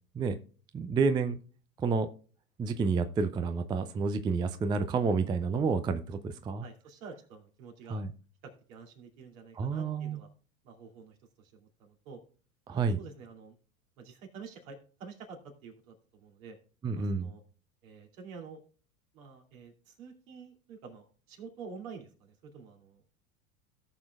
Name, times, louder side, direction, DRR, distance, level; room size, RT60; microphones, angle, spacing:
voice 1, 0.7-1.4 1.8-2.1 2.6-6.6 7.9-8.1 9.6-10.2 12.7-13.0 16.8-17.3, right 4 dB, 10° right, 10 dB, 0.4 m, -29 dB
voice 2, 6.6-8.0 8.4-10.3 10.6-12.2 13.0-13.5 14.0-16.6 16.9-17.4 17.8-18.6 19.1-23.0, right 5 dB, 65° right, 2 dB, 2.9 m, -48 dB
18.0 x 6.0 x 2.4 m, 0.40 s
hypercardioid pair, 90°, 45 cm